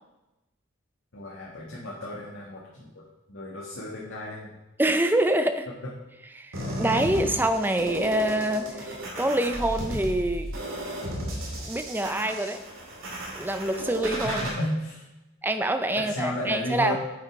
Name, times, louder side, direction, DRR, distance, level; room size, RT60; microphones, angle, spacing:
voice 1, 1.1-2.9 3.3-4.5 14.2-15.1 15.9-17.0, left 1 dB, 70° left, -5 dB, 1.6 m, -33 dB
voice 2, 4.8-5.7 6.3-10.5 11.6-12.6 13.4-14.5 15.4-17.0, right 1 dB, 10° right, 8 dB, 0.5 m, -26 dB
sound 1, 6.5-14.5, equal, 80° right, 2.4 m, -34 dB
9.0 x 5.5 x 4.7 m, 1.0 s
head